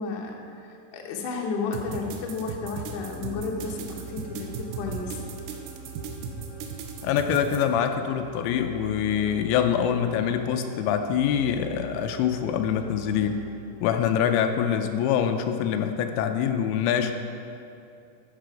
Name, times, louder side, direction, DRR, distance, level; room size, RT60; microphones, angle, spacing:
voice 1, 0.0-5.2, left 4 dB, 70° left, 0 dB, 2.1 m, -32 dB
sound 1, 1.7-7.6, right 6 dB, 80° right, 2.8 m, -37 dB
sound 2, 2.7-14.1, right 5 dB, 50° right, 2.6 m, -43 dB
voice 2, 7.0-13.4 13.8-17.1, left 8 dB, 90° left, 6 dB, 2.8 m, -25 dB
13.0 x 6.7 x 5.1 m, 2.6 s
omnidirectional pair, 5.1 m